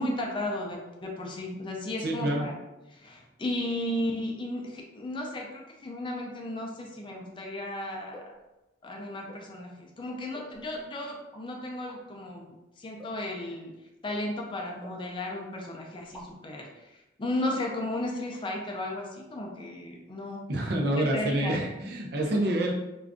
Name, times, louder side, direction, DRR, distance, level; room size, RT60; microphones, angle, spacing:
voice 1, 0.0-2.5 2.9-8.3 8.8-13.7 14.0-20.4 20.8-21.6 22.3-22.6, left 1 dB, 25° left, 0 dB, 0.4 m, -34 dB
voice 2, 2.0-2.5 20.5-22.7, right 1 dB, 60° right, 1 dB, 0.5 m, -27 dB
sound 1, 8.1-8.4 9.3-9.5 10.3-10.9 11.3-11.4 11.9-12.0 13.0-13.3 14.1-14.2 14.8-15.4 15.6-15.7 16.0-16.5, equal, 5° left, 0.8 m, -49 dB
2.5 x 2.3 x 3.5 m, 0.99 s
head